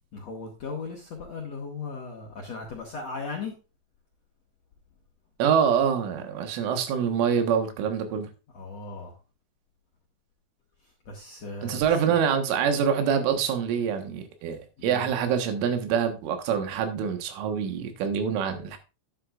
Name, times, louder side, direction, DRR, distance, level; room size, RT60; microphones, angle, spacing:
voice 1, 0.1-3.5 8.5-9.2 11.1-12.1 14.8-15.1, left 4 dB, 60° left, 1.8 m, -37 dB
voice 2, 5.4-8.3 11.6-18.8, right 7 dB, 90° right, 3.9 m, -25 dB
11.0 x 9.6 x 2.5 m
omnidirectional pair, 5.5 m